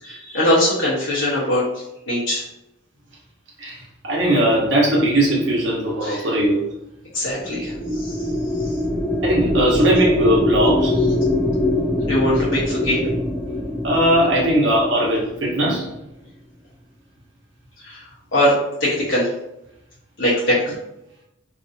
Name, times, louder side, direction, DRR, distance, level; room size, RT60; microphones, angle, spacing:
voice 1, 0.0-2.4 6.0-6.3 7.1-8.3 8.6-8.8 12.0-13.2 17.8-18.5 18.8-19.3 20.2-20.7, left 1 dB, 80° left, -9 dB, 1.1 m, -22 dB
voice 2, 4.0-6.6 9.2-10.9 13.8-15.9, right 1 dB, 70° right, -3 dB, 1.0 m, -19 dB
sound 1, 7.3-15.8, left 1 dB, 5° right, 0.3 m, -23 dB
2.9 x 2.7 x 2.6 m, 0.87 s
head